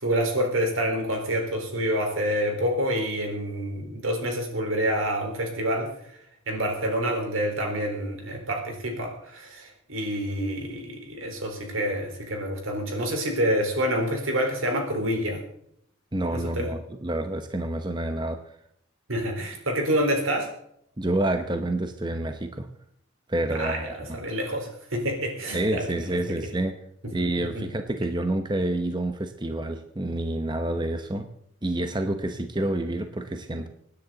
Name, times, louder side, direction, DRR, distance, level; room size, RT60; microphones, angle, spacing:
voice 1, 0.0-5.9 6.5-15.4 16.3-16.7 19.1-20.5 23.5-25.9 26.4-26.5 27.5-27.6, equal, 90° right, 3 dB, 4.1 m, -27 dB
voice 2, 16.1-18.4 21.0-22.7 23.3-24.2 25.5-26.8 27.1-31.3 31.6-33.7, right 1 dB, 20° right, 7 dB, 0.8 m, -28 dB
25.5 x 9.9 x 3.9 m, 0.70 s
head